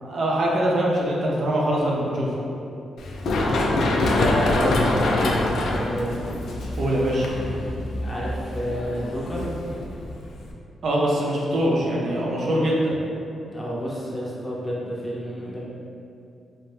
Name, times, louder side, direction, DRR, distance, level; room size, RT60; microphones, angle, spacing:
voice 1, 0.0-2.3 6.8-7.3 10.8-12.9, right 1 dB, 60° right, -4 dB, 0.5 m, -23 dB
Run, 3.0-10.5, left 2 dB, 75° left, 0.3 m, -25 dB
voice 2, 3.9-6.2 8.0-9.5 13.5-15.6, equal, 20° left, -6 dB, 0.6 m, -29 dB
2.6 x 2.0 x 3.5 m, 2.6 s
cardioid pair, 110°, 0 cm